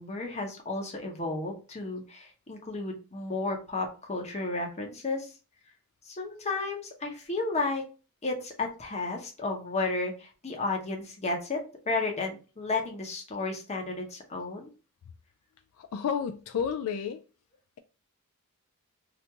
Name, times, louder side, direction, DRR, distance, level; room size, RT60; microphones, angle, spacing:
voice 1, 0.0-5.3 6.1-7.8 8.2-11.6 11.9-14.7, left 3 dB, 30° left, 0.8 m, -33 dB
voice 2, 15.8-17.2, left 7 dB, 70° left, 0.3 m, -31 dB
2.9 x 2.5 x 3.4 m
head